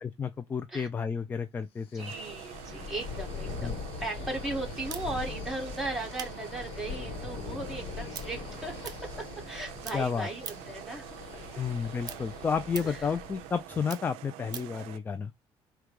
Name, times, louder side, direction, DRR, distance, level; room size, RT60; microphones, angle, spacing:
voice 1, 0.0-2.1 3.6-3.7 9.9-10.3 11.6-15.3, left 6 dB, 20° left, 0.4 m, -31 dB
sound 1, 1.9-13.7, left 4 dB, 70° left, 1.1 m, -41 dB
voice 2, 1.9-8.8 9.2-11.2 12.1-12.2 12.8-13.1, right 2 dB, ahead, 1.9 m, -37 dB
sound 2, 2.0-15.0, right 16 dB, 85° right, 0.4 m, -46 dB
sound 3, 4.9-9.6 9.8-10.8 11.2-14.8, right 8 dB, 40° right, 0.6 m, -45 dB
4.9 x 2.3 x 4.7 m
cardioid pair, 135°, 10 cm